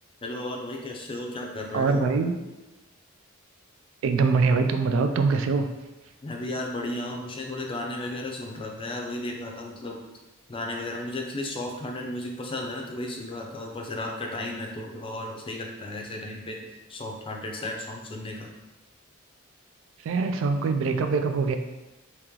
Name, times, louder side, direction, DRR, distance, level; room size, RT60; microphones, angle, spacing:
voice 1, 0.2-2.1 6.2-10.0 10.5-16.6 16.9-18.5, left 1 dB, 25° left, 1 dB, 0.5 m, -34 dB
voice 2, 1.7-2.3 4.0-5.7 20.0-21.6, right 4 dB, 65° right, 7 dB, 0.3 m, -23 dB
3.0 x 2.9 x 3.7 m, 1.1 s
head